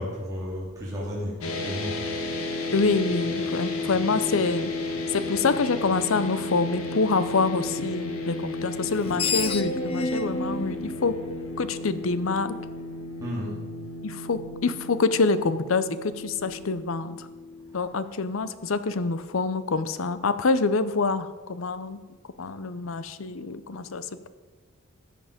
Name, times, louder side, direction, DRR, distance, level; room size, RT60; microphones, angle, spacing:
voice 1, 0.0-2.0 13.2-13.5, equal, 15° right, -7 dB, 2.7 m, -32 dB
sound 1, 1.4-17.8, left 2 dB, 90° left, 1.6 m, -33 dB
voice 2, 2.7-4.7 5.1-11.1 11.6-12.6 14.0-17.3 17.7-22.0 22.4-24.3, left 4 dB, 70° left, 13 dB, 0.7 m, -26 dB
Screech, 8.8-12.1, left 3 dB, 25° left, 0.6 m, -30 dB
13.5 x 7.8 x 5.1 m, 1.4 s
head